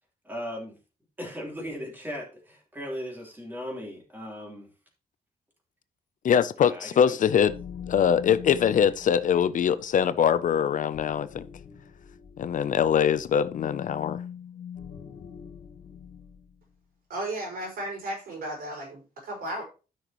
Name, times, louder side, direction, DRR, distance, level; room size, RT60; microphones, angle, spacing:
voice 1, 0.2-0.8 1.2-4.7 6.6-7.2, equal, 10° right, 3.4 m, -37 dB
voice 2, 6.2-7.5 7.9-11.4 12.4-14.2, left 8 dB, 60° left, 0.6 m, -23 dB
sound 1, 7.4-16.6, left 8 dB, 85° left, 1.8 m, -43 dB
voice 3, 17.1-19.6, right 1 dB, 80° right, 4.9 m, -34 dB
13.5 x 6.1 x 3.0 m
wide cardioid pair, 140°, 15 cm